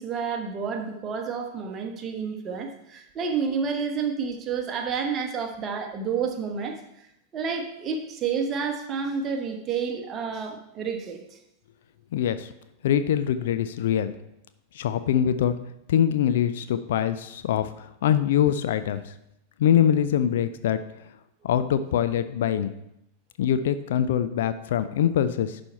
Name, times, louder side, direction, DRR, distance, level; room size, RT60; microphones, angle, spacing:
voice 1, 0.0-6.8 7.3-11.4, right 6 dB, 30° right, 4 dB, 1.2 m, -30 dB
voice 2, 12.1-12.5 12.8-14.1 14.7-15.5 15.9-19.1 19.6-20.8 21.4-22.7 23.4-25.6, left 9 dB, 55° left, 11 dB, 0.4 m, -23 dB
11.0 x 4.4 x 4.5 m, 0.81 s
figure-of-eight pair, 90°, 0 cm